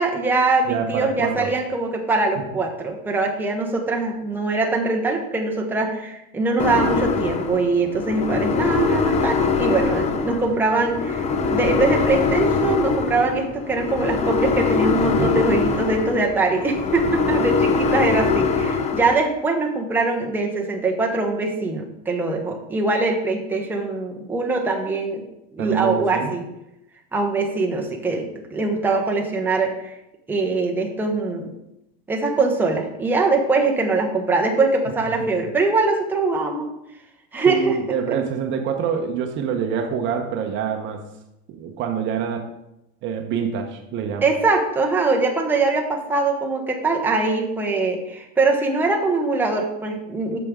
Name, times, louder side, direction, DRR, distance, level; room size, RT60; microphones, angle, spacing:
voice 1, 0.0-25.2 25.5-26.4 27.1-29.9 30.3-31.5 32.1-36.7 37.3-37.8 44.2-50.4, right 3 dB, 5° right, 0 dB, 0.9 m, -22 dB
voice 2, 0.7-1.5 8.3-8.5 15.2-15.4 25.6-26.4 37.5-41.0 41.5-42.5 43.0-44.3, right 7 dB, 40° right, 5 dB, 0.9 m, -26 dB
sound 1, 6.6-19.1, left 5 dB, 25° left, 0.6 m, -23 dB
8.3 x 6.1 x 3.7 m, 0.86 s
supercardioid pair, 140°, 29 cm